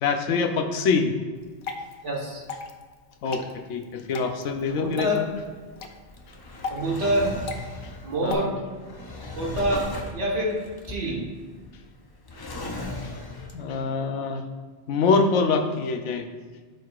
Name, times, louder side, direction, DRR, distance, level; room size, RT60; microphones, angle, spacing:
voice 1, 0.0-1.1 3.2-3.4 3.7-5.3 8.2-8.5 13.5-14.4 14.9-16.3, left 4 dB, 90° left, 6 dB, 1.0 m, -24 dB
Water / Drip, 1.3-8.3, left 4 dB, 65° left, 0.8 m, -39 dB
voice 2, 2.0-2.4 4.7-5.3 6.7-7.4 8.0-8.6 9.4-10.6 10.9-11.3, right 1 dB, 85° right, -2 dB, 1.8 m, -26 dB
Drawer open or close, 4.6-13.9, left 2 dB, 30° left, 0.4 m, -38 dB
12.0 x 4.7 x 2.4 m, 1.5 s
omnidirectional pair, 1.2 m